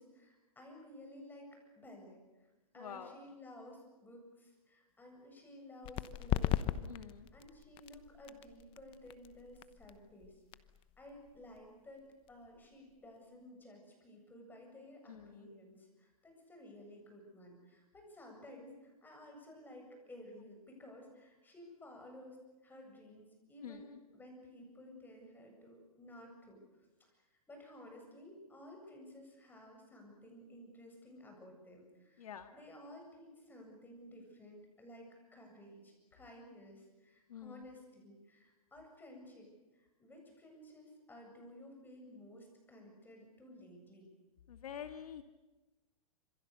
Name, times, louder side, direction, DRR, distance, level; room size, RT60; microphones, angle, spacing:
voice 1, 0.0-2.2 2.7-10.4 11.0-22.4 22.6-26.6 27.0-27.1 27.5-44.1, left 1 dB, 10° left, 2 dB, 7.9 m, -55 dB
voice 2, 2.8-3.2 6.9-7.3 15.1-15.5 23.6-24.0 32.2-32.5 37.3-37.7 44.5-45.2, left 9 dB, 75° left, 7 dB, 2.0 m, -47 dB
sound 1, 5.8-13.2, left 13 dB, 30° left, 1.0 m, -40 dB
26.5 x 26.5 x 6.8 m, 1.1 s
hypercardioid pair, 130°, 19 cm